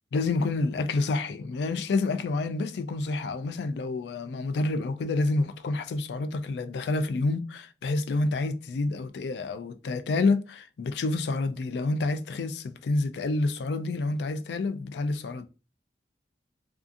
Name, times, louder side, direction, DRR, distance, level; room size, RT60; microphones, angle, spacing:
voice 1, 0.1-15.5, left 3 dB, 75° left, 0.3 m, -28 dB
2.4 x 2.3 x 2.5 m
head